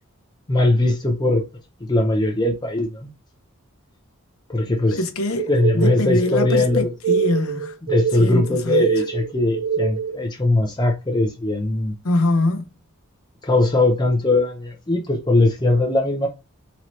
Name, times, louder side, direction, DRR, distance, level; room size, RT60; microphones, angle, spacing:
voice 1, 0.5-1.4 1.9-3.1 4.5-5.0 5.5-6.9 7.8-11.9 13.4-16.3, left 2 dB, 20° left, 0.7 m, -20 dB
voice 2, 4.9-7.7 8.2-8.8 12.0-12.7, left 2 dB, 70° left, 0.9 m, -23 dB
sound 1, 5.4-10.2, right 6 dB, 60° right, 0.4 m, -24 dB
4.1 x 2.9 x 3.1 m
head